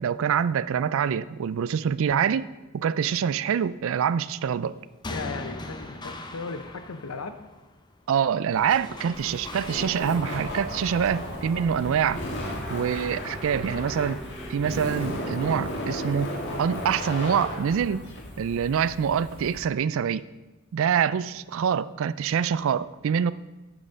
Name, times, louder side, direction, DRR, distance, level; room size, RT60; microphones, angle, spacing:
voice 1, 0.0-2.5 2.7-4.7 8.1-12.2 12.7-14.2 14.5-16.3 16.6-18.0 18.4-20.2 20.7-23.3, right 7 dB, 65° right, 17 dB, 0.3 m, -25 dB
sound 1, 4.6-13.9, left 2 dB, 20° left, 0.6 m, -42 dB
voice 2, 5.1-7.4, left 4 dB, 85° left, 9 dB, 0.7 m, -36 dB
sound 2, 8.5-16.1, equal, ahead, 1.1 m, -44 dB
Laughter, 9.1-19.6, equal, 55° left, 1.7 m, -35 dB
8.9 x 6.4 x 5.1 m, 1.1 s
head